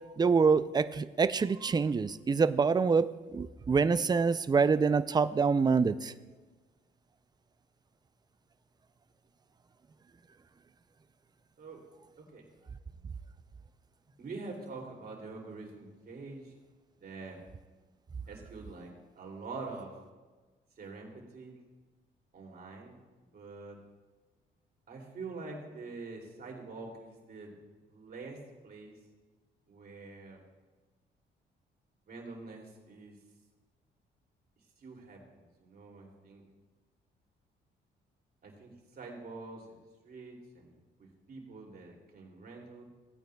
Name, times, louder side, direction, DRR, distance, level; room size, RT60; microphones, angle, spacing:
voice 1, 0.2-6.1, right 5 dB, 20° right, 13 dB, 0.4 m, -26 dB
voice 2, 14.2-16.5 17.0-17.4 18.3-18.9 19.2-19.9 20.8-21.6 22.3-23.0 23.3-23.8 24.9-27.5 27.9-28.4 28.6-29.0 29.7-30.4 32.1-33.2 34.8-36.4 38.4-39.8 40.0-42.8, right 3 dB, 50° right, 0 dB, 2.7 m, -45 dB
17.0 x 9.1 x 2.3 m, 1.3 s
cardioid pair, 90°, 20 cm